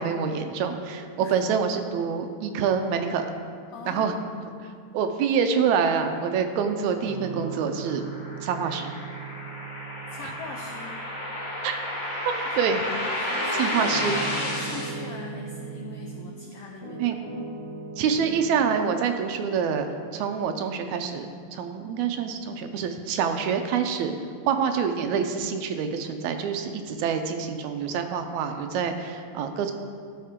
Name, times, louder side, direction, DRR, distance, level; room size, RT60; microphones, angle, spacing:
voice 1, 0.0-3.3 3.9-4.2 4.6-8.0 8.4-8.9 11.6-11.8 12.3-12.8 13.6-14.2 17.0-17.2 18.0-19.9 20.1-24.1 24.5-29.7, right 6 dB, 80° right, 6 dB, 1.9 m, -26 dB
voice 2, 3.7-4.1 10.1-11.0 12.3-12.4 13.1-14.0 14.2-17.2, left 5 dB, 80° left, 1 dB, 1.3 m, -41 dB
Piano, 7.0-16.4 16.8-18.8, right 5 dB, 35° right, 2.5 m, -39 dB
sound 1, 7.1-14.9, left 1 dB, 40° left, 1.6 m, -32 dB
13.0 x 5.7 x 3.6 m, 2.1 s
omnidirectional pair, 3.4 m